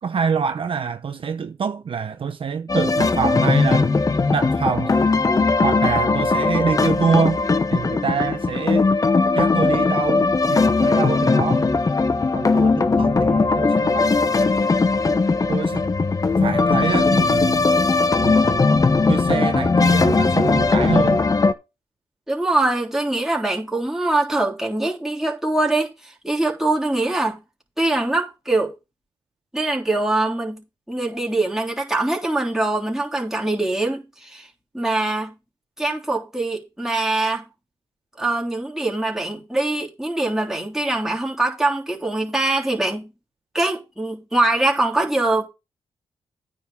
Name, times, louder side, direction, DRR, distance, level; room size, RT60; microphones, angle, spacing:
voice 1, 0.0-3.9 4.3-5.0 5.6-7.4 7.7-8.9 9.3-11.7 12.3-14.2 15.5-15.8 16.4-17.7 18.2-18.8 19.1-21.3, right 6 dB, 55° right, 0.8 m, -25 dB
sound 1, 2.7-21.5, left 3 dB, 35° left, 0.8 m, -19 dB
voice 2, 22.3-27.4 27.8-28.7 29.5-34.5 34.7-35.3 35.8-37.4 38.2-43.1 43.5-45.5, right 2 dB, 5° right, 3.4 m, -23 dB
9.3 x 3.9 x 7.1 m
cardioid pair, 65°, 10 cm